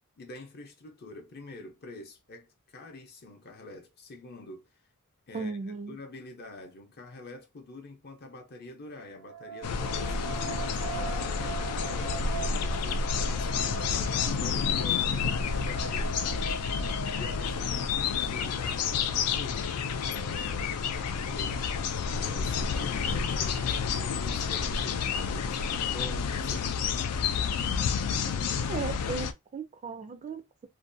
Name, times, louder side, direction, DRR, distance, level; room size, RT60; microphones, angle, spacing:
voice 1, 0.2-4.6 5.3-5.6 5.9-16.6 17.2-19.7 20.1-21.6 22.1-26.9, left 2 dB, 45° left, 0.6 m, -46 dB
voice 2, 5.3-6.0 28.6-30.7, right 4 dB, 35° right, 0.3 m, -36 dB
sound 1, 9.1-18.3, right 5 dB, 85° right, 0.6 m, -41 dB
sound 2, 9.6-29.3, left 6 dB, 90° left, 0.4 m, -30 dB
2.6 x 2.2 x 2.5 m
head